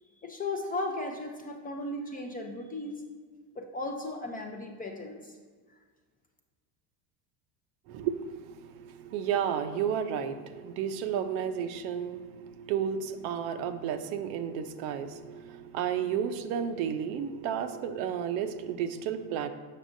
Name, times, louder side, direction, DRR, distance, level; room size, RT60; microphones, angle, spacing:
voice 1, 0.2-3.0 3.6-5.3, left 2 dB, 20° left, 2 dB, 0.4 m, -36 dB
voice 2, 7.9-19.5, right 8 dB, 65° right, 9 dB, 0.6 m, -32 dB
6.5 x 6.0 x 2.5 m, 1.5 s
supercardioid pair, 100°, 49 cm